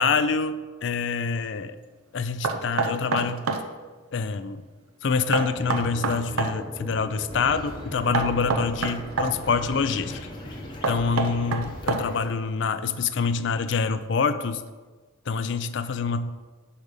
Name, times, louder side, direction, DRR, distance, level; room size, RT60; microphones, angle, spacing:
voice 1, 0.0-1.8 2.1-3.5 4.1-4.6 5.0-10.2 10.9-14.6 15.3-16.3, left 5 dB, 60° left, 11 dB, 0.4 m, -26 dB
Knock, 2.4-3.7 5.3-6.5 8.1-9.3 10.8-12.3, right 4 dB, 90° right, 0.7 m, -26 dB
sound 1, 5.5-11.6, equal, 15° right, 0.4 m, -41 dB
sound 2, 7.3-12.3, equal, 20° left, 1.0 m, -39 dB
5.3 x 4.9 x 6.4 m, 1.3 s
head